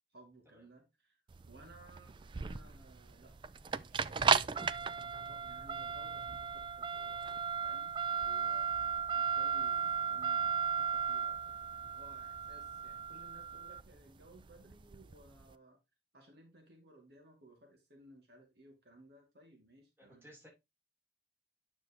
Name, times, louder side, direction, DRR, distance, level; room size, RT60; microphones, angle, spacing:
voice 1, 0.1-1.2 1.5-3.3 3.6-7.2 7.6-15.8 16.1-20.3, right 1 dB, 65° right, 2.2 m, -60 dB
sound 1, 1.3-15.4, right 6 dB, 30° right, 0.3 m, -35 dB
voice 2, 20.0-20.5, equal, 15° right, 3.4 m, -58 dB
9.4 x 6.1 x 2.9 m
head